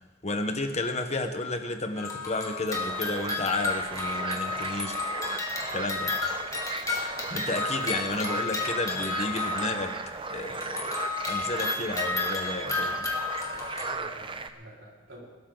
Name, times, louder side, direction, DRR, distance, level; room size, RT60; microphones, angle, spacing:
voice 1, 0.2-5.0 5.7-6.3 7.3-10.0 10.3-13.3, left 2 dB, 35° left, 7 dB, 1.2 m, -32 dB
sound 1, 2.0-10.2 10.5-13.9, left 4 dB, 20° left, 1.7 m, -32 dB
sound 2, 2.7-14.5, right 4 dB, 30° right, 0.7 m, -36 dB
voice 2, 8.0-8.7 13.7-15.3, equal, 85° right, -4 dB, 4.6 m, -48 dB
22.0 x 12.5 x 3.9 m, 1.2 s
head